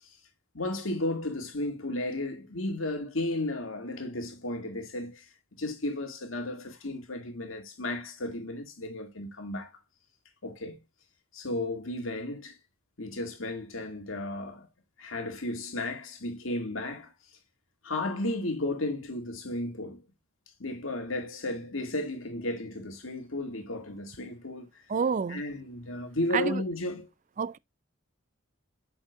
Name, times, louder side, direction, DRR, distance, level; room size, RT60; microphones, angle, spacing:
voice 1, 0.5-5.3 5.6-9.7 10.4-10.8 11.3-12.6 13.0-14.7 15.0-17.1 17.8-20.0 20.6-24.8 25.3-27.1, left 2 dB, 85° left, 2.0 m, -34 dB
voice 2, 24.9-25.4 26.3-26.6 27.4-27.6, right 6 dB, 40° right, 0.3 m, -28 dB
8.2 x 6.2 x 2.3 m
head